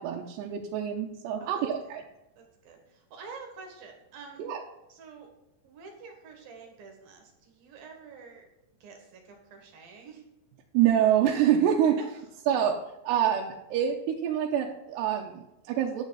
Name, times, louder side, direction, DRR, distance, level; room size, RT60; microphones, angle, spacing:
voice 1, 0.0-2.0 4.4-4.6 10.7-12.0 12.5-12.8 13.0-16.0, right 10 dB, 85° right, 0 dB, 2.9 m, -26 dB
voice 2, 2.4-4.4 4.9-5.3 5.6-8.5 8.8-10.2 12.0-12.2, right 4 dB, 65° right, 2 dB, 3.2 m, -47 dB
10.0 x 8.2 x 4.0 m, 0.91 s
omnidirectional pair, 4.8 m